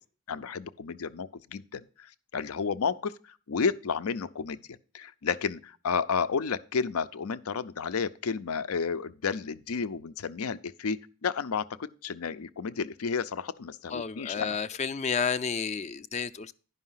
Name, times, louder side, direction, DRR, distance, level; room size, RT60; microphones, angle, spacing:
voice 1, 0.3-11.7 12.0-14.6, left 5 dB, 90° left, 0.5 m, -32 dB
voice 2, 13.9-16.5, left 6 dB, 30° left, 0.4 m, -31 dB
10.5 x 5.5 x 5.6 m
head